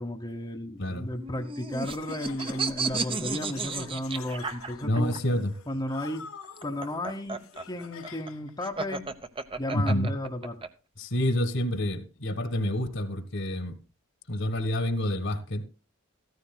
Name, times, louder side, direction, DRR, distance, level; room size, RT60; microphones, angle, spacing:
voice 1, 0.0-5.2 5.7-6.3 6.6-7.4 7.7-9.0 9.6-10.6, left 1 dB, 20° left, 1.0 m, -34 dB
sound 1, 1.2-5.2 6.4-10.7, right 4 dB, 25° right, 0.8 m, -33 dB
Laughter, 1.7-8.5, left 6 dB, 80° left, 1.2 m, -48 dB
voice 2, 4.8-5.5 9.7-10.1 11.0-13.8 14.3-15.6, left 1 dB, 60° left, 1.7 m, -28 dB
14.5 x 14.5 x 2.2 m
head